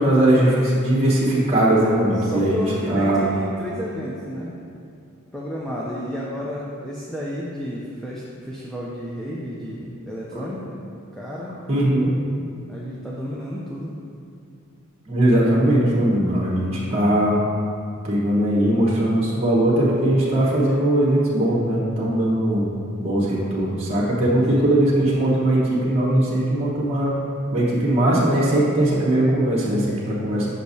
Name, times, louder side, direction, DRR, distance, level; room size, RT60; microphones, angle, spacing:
voice 1, 0.0-3.2 10.3-10.4 11.7-12.1 15.1-17.4 18.0-22.7 23.0-27.1 27.5-30.5, right 1 dB, 30° right, -6 dB, 1.1 m, -20 dB
voice 2, 2.2-4.6 5.3-10.8 11.1-11.6 12.7-14.0, equal, 5° left, -6 dB, 0.5 m, -31 dB
6.6 x 6.1 x 2.7 m, 2.4 s
head